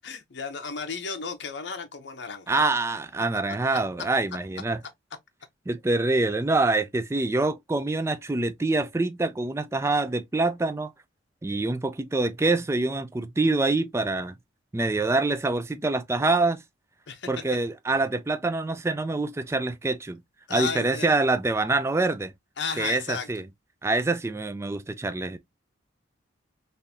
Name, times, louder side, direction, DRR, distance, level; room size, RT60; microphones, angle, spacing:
voice 1, 0.0-2.7 3.7-3.8 17.1-17.5 20.5-21.2 22.6-23.3, left 5 dB, 65° left, 0.8 m, -33 dB
voice 2, 2.5-4.8 5.7-10.9 11.4-14.3 14.7-16.6 17.3-20.2 20.5-22.3 22.8-23.4 23.8-25.4, right 2 dB, 15° right, 0.3 m, -25 dB
3.7 x 2.6 x 2.7 m
head